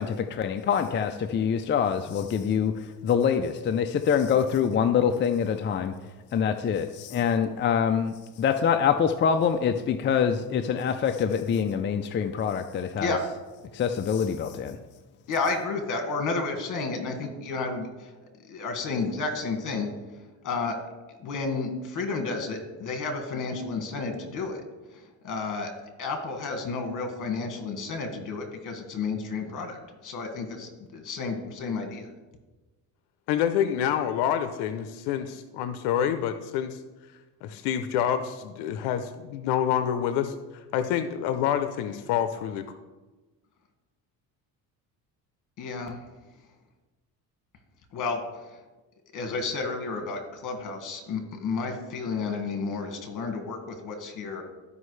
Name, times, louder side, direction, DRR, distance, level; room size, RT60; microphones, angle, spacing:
voice 1, 0.0-5.9 6.3-13.2 13.7-14.8, left 7 dB, 30° left, 7 dB, 0.4 m, -25 dB
voice 2, 15.3-18.1 18.5-19.9 20.4-20.7 21.2-24.6 24.9-25.7 26.0-29.8 30.0-32.1 45.6-46.0 47.9-48.6 49.1-54.4, left 4 dB, 50° left, 5 dB, 1.7 m, -31 dB
voice 3, 33.3-36.8 37.4-42.6, left 9 dB, 85° left, 9 dB, 0.7 m, -27 dB
13.0 x 5.4 x 3.2 m, 1.2 s
cardioid pair, 105°, 39 cm